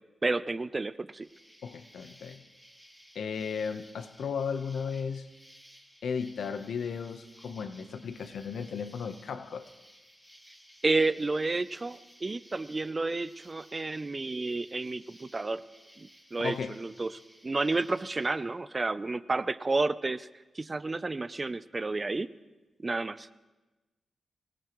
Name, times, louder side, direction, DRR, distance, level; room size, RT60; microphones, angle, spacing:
voice 1, 0.2-1.3 10.8-15.6 16.0-17.1 17.4-20.3 20.6-22.3 22.8-23.3, right 3 dB, 25° right, 0.4 m, -31 dB
Insect, 1.2-18.3, equal, 5° left, 1.6 m, -57 dB
voice 2, 1.6-2.4 3.1-5.3 6.0-9.7 16.4-16.8, left 6 dB, 85° left, 0.9 m, -35 dB
24.5 x 18.5 x 3.1 m
wide cardioid pair, 130°, 0 cm